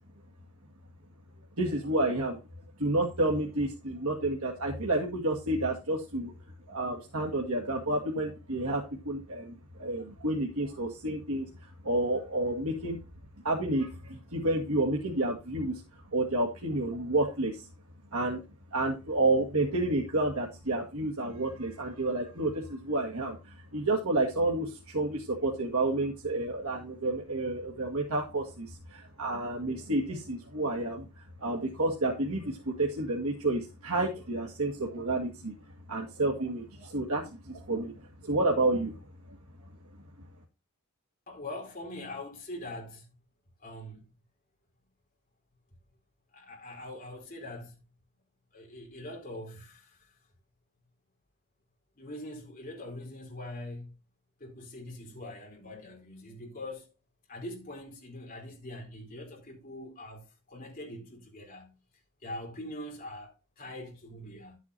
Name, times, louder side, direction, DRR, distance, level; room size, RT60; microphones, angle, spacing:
voice 1, 1.6-2.4 2.8-6.3 6.7-11.5 11.8-13.0 13.4-15.8 16.1-17.7 18.1-18.4 18.7-31.1 31.4-35.5 35.9-37.9 38.2-38.9, right 2 dB, 75° right, 1.8 m, -30 dB
voice 2, 41.3-43.1 43.6-44.0 46.3-47.8 48.5-50.1 52.0-53.9 54.4-56.9 57.3-61.7 62.2-64.6, left 1 dB, 40° left, 4.0 m, -43 dB
11.5 x 8.2 x 2.7 m
head